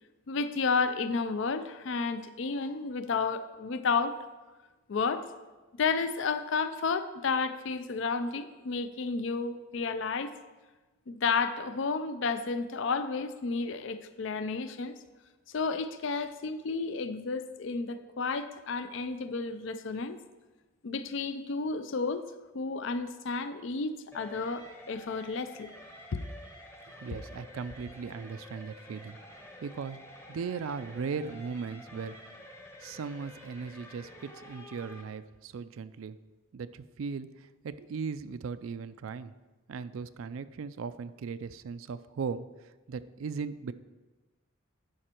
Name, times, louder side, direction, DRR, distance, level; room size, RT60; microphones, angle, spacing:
voice 1, 0.3-4.1 4.9-5.2 5.8-10.3 11.1-14.9 15.5-20.2 20.8-22.2 22.5-25.7 26.1-26.3, left 4 dB, 65° left, 11 dB, 0.4 m, -31 dB
sound 1, 24.1-35.0, left 1 dB, 15° left, 0.8 m, -50 dB
voice 2, 27.0-29.2 29.6-30.0 30.3-32.2 32.8-36.2 36.5-39.3 39.7-43.7, right 5 dB, 80° right, 12 dB, 0.4 m, -38 dB
11.0 x 5.2 x 4.4 m, 1.2 s
head